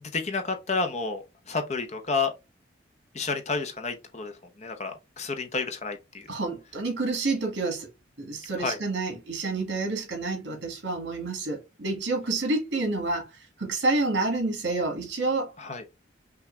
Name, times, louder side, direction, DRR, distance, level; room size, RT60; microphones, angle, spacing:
voice 1, 0.0-2.3 3.1-4.3 4.6-6.3 8.6-8.8 15.6-15.8, left 4 dB, 35° left, 0.8 m, -30 dB
voice 2, 6.3-7.9 8.2-13.3 13.6-15.5, right 3 dB, 75° right, 1.7 m, -28 dB
5.8 x 2.5 x 3.2 m
head